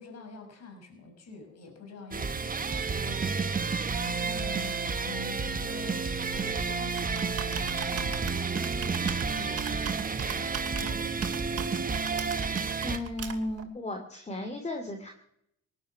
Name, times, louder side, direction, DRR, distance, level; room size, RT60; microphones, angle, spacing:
voice 1, 0.0-3.6 4.0-11.9, left 3 dB, 60° left, 4 dB, 6.0 m, -46 dB
sound 1, 2.1-13.0, right 5 dB, 30° right, 1.3 m, -31 dB
Computer keyboard, 6.3-13.6, right 7 dB, 50° right, 2.4 m, -39 dB
voice 2, 12.8-15.1, left 1 dB, 20° left, 5 dB, 2.5 m, -35 dB
19.5 x 12.0 x 5.7 m, 0.72 s
cardioid pair, 90°, 30 cm